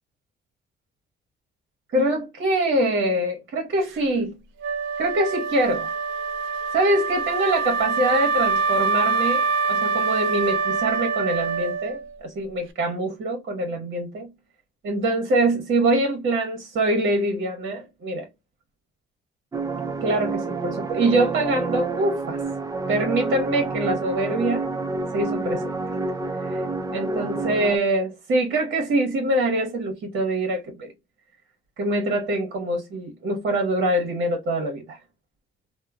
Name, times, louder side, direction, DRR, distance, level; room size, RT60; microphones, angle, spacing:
voice 1, 1.9-4.3 5.0-5.9 6.7-14.3 14.8-18.3 20.0-22.4 22.9-24.7 25.1-25.8 26.4-26.6 26.9-30.9 31.8-35.0, right 1 dB, 60° right, 0.9 m, -24 dB
Wind instrument woodwind instrument, 4.6-12.2, right 4 dB, 80° right, 0.5 m, -25 dB
sound 1, 19.5-27.8, right 3 dB, 15° right, 0.4 m, -28 dB
2.8 x 2.0 x 2.3 m
cardioid pair, 90°, 20 cm